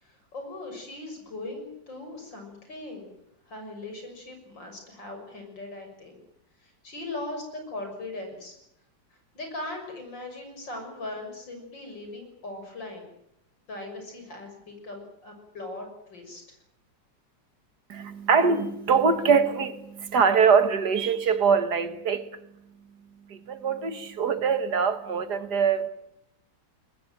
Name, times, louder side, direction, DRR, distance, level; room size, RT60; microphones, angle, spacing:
voice 1, 0.0-3.1 3.5-6.2 6.6-8.6 9.3-13.1 13.7-16.4, left 2 dB, 75° left, 7.1 m, -39 dB
voice 2, 17.9-22.3 23.3-25.9, right 6 dB, 60° right, 2.2 m, -23 dB
23.5 x 20.0 x 9.1 m
omnidirectional pair, 2.0 m